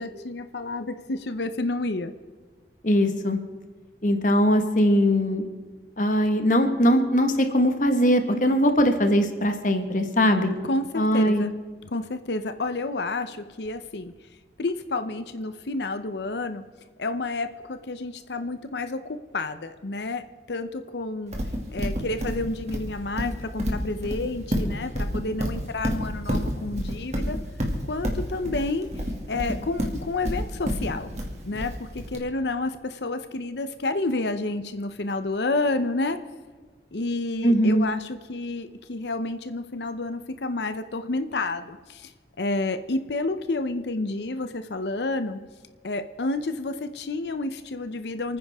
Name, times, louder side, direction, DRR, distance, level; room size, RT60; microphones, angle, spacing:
voice 1, 0.0-2.1 10.6-11.5 11.8-14.1 14.6-16.6 17.0-21.3 21.7-27.4 27.9-28.9 29.3-31.1 31.4-36.2 36.9-42.1 42.4-45.4 45.8-48.4, left 2 dB, 75° left, 10 dB, 0.7 m, -30 dB
voice 2, 2.8-3.4 4.0-5.4 6.0-10.5 10.9-11.4 37.4-37.9, equal, 45° left, 6 dB, 1.5 m, -21 dB
Livestock farm animals working animals, 21.3-32.2, equal, 40° right, 2.3 m, -28 dB
29.0 x 9.7 x 3.6 m, 1.5 s
head